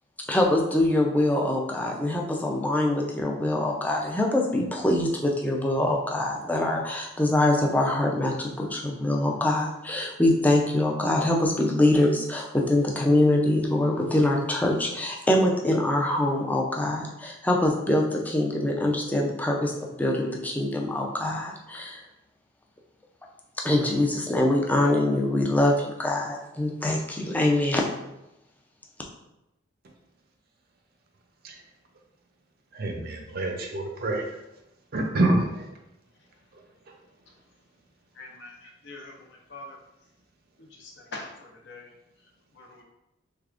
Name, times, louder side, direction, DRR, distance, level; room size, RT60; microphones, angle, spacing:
voice 1, 0.3-22.0 23.6-27.9, left 1 dB, 10° left, -1 dB, 0.4 m, -24 dB
voice 2, 32.7-34.4 34.9-35.7, right 2 dB, 50° right, 2 dB, 0.6 m, -26 dB
voice 3, 38.2-39.1 39.5-39.8 40.8-41.3 41.6-41.9 42.6-42.8, left 2 dB, 60° left, 0 dB, 0.7 m, -42 dB
3.4 x 3.4 x 2.4 m, 0.90 s
head